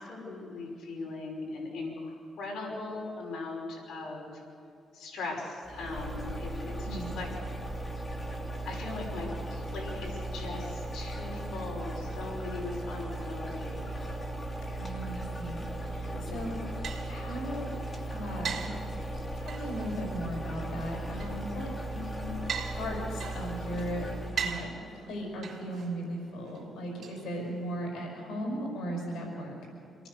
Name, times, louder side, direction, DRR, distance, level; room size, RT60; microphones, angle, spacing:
voice 1, 0.1-4.4 4.9-7.3 8.6-13.9 16.1-16.5 21.9-22.6 27.3-28.1, left 3 dB, 75° left, -2 dB, 5.8 m, -39 dB
sound 1, 5.6-24.6, right 1 dB, 25° left, 2.8 m, -37 dB
voice 2, 6.8-7.2 14.8-16.5 17.1-17.8 18.1-18.7 19.4-21.7 22.6-29.5, equal, 90° left, 0 dB, 5.7 m, -37 dB
sound 2, 16.2-27.9, right 7 dB, 65° right, 3.3 m, -42 dB
26.0 x 19.0 x 6.8 m, 2.8 s
cardioid pair, 120°, 0 cm